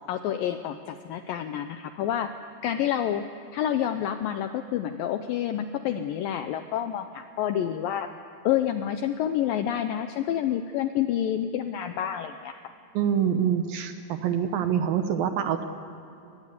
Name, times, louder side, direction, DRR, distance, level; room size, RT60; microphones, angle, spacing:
voice 1, 0.1-2.4 2.6-3.3 3.5-8.1 8.4-12.6, left 10 dB, 90° left, 8 dB, 2.0 m, -28 dB
voice 2, 12.9-15.7, right 8 dB, 70° right, 7 dB, 2.4 m, -25 dB
22.5 x 20.0 x 8.3 m, 2.8 s
omnidirectional pair, 4.9 m